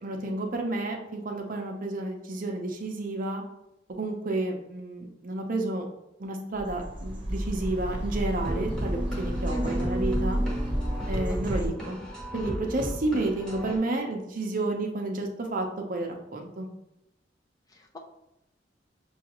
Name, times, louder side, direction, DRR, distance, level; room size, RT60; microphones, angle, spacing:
voice 1, 0.0-3.4 4.0-5.8 6.2-10.4 11.1-12.0 12.3-16.7, right 2 dB, 50° right, 3 dB, 0.6 m, -31 dB
sound 1, 6.5-11.7, equal, 25° right, 0.9 m, -31 dB
sound 2, 8.4-13.8, equal, 5° left, 1.0 m, -33 dB
voice 2, 9.5-9.9 11.3-11.7 17.7-18.0, left 1 dB, 20° left, 1 dB, 0.4 m, -40 dB
6.1 x 2.3 x 2.9 m, 0.85 s
head